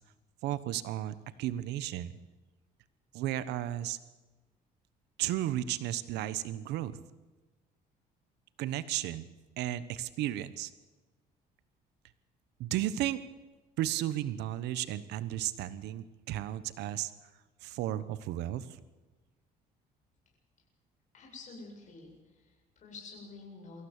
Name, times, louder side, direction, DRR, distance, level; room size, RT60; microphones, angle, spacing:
voice 1, 0.4-2.1 3.1-4.0 5.2-7.0 8.6-9.3 9.6-10.7 12.6-13.2 13.8-17.1 17.6-18.8, right 13 dB, 85° right, 15 dB, 1.1 m, -34 dB
voice 2, 21.1-23.8, left 3 dB, 45° left, -1 dB, 7.7 m, -49 dB
24.5 x 15.5 x 8.2 m, 1.2 s
cardioid pair, 110°, 17 cm